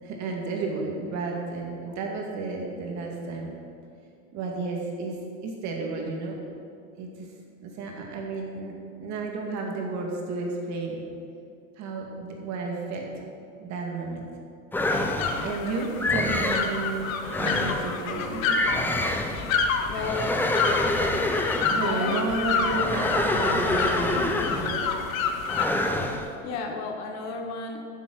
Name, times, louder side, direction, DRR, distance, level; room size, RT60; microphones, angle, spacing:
voice 1, 0.0-3.5 4.3-5.2 5.4-6.4 7.0-7.1 7.6-11.0 11.8-13.1 13.6-14.3 15.3-18.6 21.7-24.2 24.5-25.0, right 3 dB, 40° right, 0 dB, 2.2 m, -32 dB
sound 1, 14.7-15.5 16.0-16.7 17.2-17.9 18.4-19.4 19.9-21.9 22.6-24.8 25.5-26.3, left 1 dB, 5° left, 0.6 m, -26 dB
sound 2, 14.8-25.7, left 5 dB, 70° left, 1.2 m, -29 dB
sound 3, 19.3-20.5 20.8-21.5 22.0-24.9, right 1 dB, 15° right, 1.8 m, -43 dB
voice 2, 19.9-20.6 21.8-22.2 24.1-24.3 26.1-27.9, left 3 dB, 40° left, 4 dB, 1.3 m, -33 dB
9.5 x 7.6 x 6.3 m, 2.4 s
hypercardioid pair, 120°, 42 cm